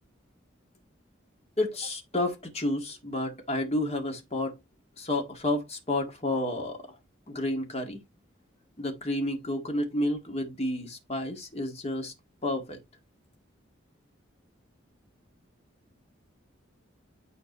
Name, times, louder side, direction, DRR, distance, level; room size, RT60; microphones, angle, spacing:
voice 1, 1.6-4.6 5.0-6.8 7.3-8.0 8.8-12.1 12.4-12.8, left 1 dB, 30° left, 1.9 m, -30 dB
9.3 x 4.5 x 3.0 m
head